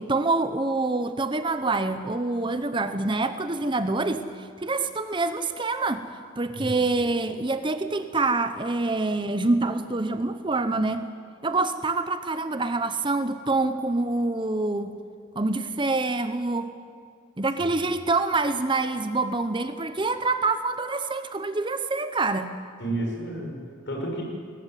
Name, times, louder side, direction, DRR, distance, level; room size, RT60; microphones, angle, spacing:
voice 1, 0.0-6.0 6.4-11.1 11.4-14.9 15.3-16.7 17.4-22.6, right 3 dB, 25° right, 10 dB, 0.8 m, -26 dB
voice 2, 22.8-24.2, right 1 dB, 60° left, 0 dB, 6.3 m, -31 dB
21.0 x 20.0 x 9.2 m, 2.2 s
head